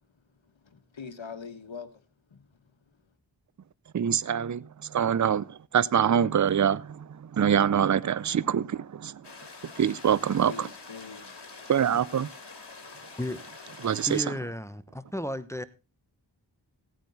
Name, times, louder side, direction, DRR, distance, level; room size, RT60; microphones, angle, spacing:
voice 1, 0.4-2.0 2.3-2.7 9.7-9.8 10.4-11.5, left 5 dB, 80° left, 1.4 m, -43 dB
voice 2, 3.9-9.3 9.6-10.7 11.7-12.3 13.8-14.2, right 8 dB, 40° right, 0.5 m, -25 dB
sound 1, 9.2-14.2, left 3 dB, 65° left, 2.2 m, -46 dB
voice 3, 14.1-15.6, left 1 dB, 5° left, 0.8 m, -33 dB
16.0 x 9.0 x 4.0 m
wide cardioid pair, 45°, 45 cm